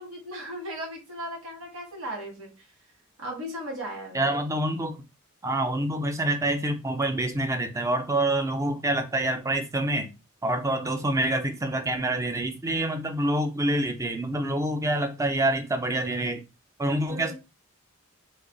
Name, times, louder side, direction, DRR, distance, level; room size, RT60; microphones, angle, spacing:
voice 1, 0.0-2.5 3.2-4.4 17.1-17.3, equal, 90° right, 1.4 m, -37 dB
voice 2, 4.1-5.0 5.4-10.1 10.4-16.4 16.8-17.3, right 1 dB, 15° right, 0.4 m, -26 dB
3.1 x 2.2 x 3.8 m
head